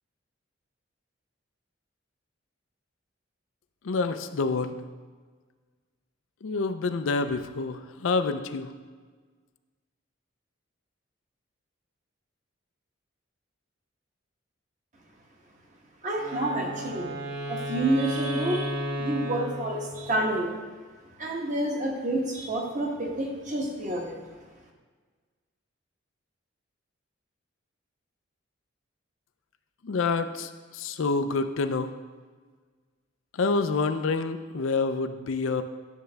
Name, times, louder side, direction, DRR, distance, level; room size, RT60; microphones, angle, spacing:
voice 1, 3.8-4.8 6.4-8.7 29.8-31.9 33.3-35.6, left 4 dB, 80° left, 9 dB, 0.5 m, -27 dB
voice 2, 16.0-17.1 17.5-18.7 19.0-20.5 21.2-24.2, right 1 dB, 40° right, 0 dB, 1.2 m, -28 dB
Wind instrument woodwind instrument, 16.2-20.4, equal, 60° right, 1.6 m, -33 dB
10.0 x 6.6 x 3.4 m, 1.5 s
head